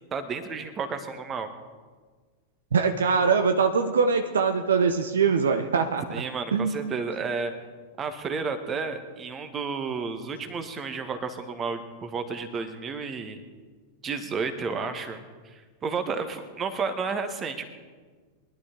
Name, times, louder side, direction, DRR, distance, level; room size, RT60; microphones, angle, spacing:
voice 1, 0.1-1.5 6.1-7.5 8.0-13.4 14.0-17.6, right 5 dB, 25° right, 9 dB, 1.4 m, -32 dB
voice 2, 2.7-6.0 6.5-6.8, right 5 dB, 65° right, 8 dB, 0.7 m, -22 dB
21.5 x 11.5 x 3.8 m, 1.4 s
figure-of-eight pair, 90°, 0 cm